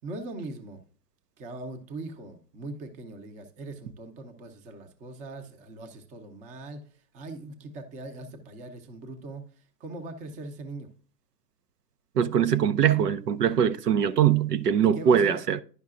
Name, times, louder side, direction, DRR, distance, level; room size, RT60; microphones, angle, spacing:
voice 1, 0.0-0.8 1.4-6.8 7.1-9.4 9.8-10.9 14.9-15.4, right 2 dB, 15° right, 0.7 m, -40 dB
voice 2, 12.2-15.6, right 8 dB, 70° right, 0.7 m, -22 dB
11.0 x 5.3 x 2.5 m
hypercardioid pair, 125°, 49 cm